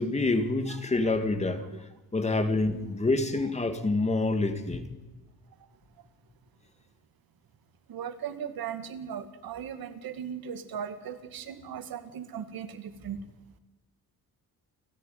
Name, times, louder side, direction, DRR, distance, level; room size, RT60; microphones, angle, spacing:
voice 1, 0.0-1.7 2.1-4.8, left 2 dB, 20° left, 2.0 m, -27 dB
voice 2, 7.9-13.2, right 8 dB, 85° right, 2.1 m, -38 dB
29.5 x 14.5 x 9.3 m
wide cardioid pair, 170°, 35 cm